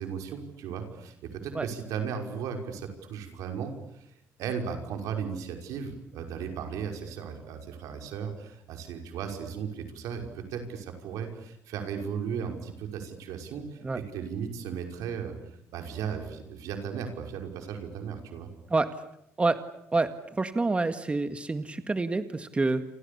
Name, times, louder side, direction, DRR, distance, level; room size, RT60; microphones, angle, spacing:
voice 1, 0.0-4.1 4.4-15.3 15.7-18.5, right 7 dB, 85° right, 5 dB, 5.8 m, -36 dB
voice 2, 19.9-22.8, right 3 dB, 20° right, 10 dB, 1.9 m, -27 dB
29.0 x 28.0 x 7.1 m, 0.78 s
cardioid pair, 100°, 6 cm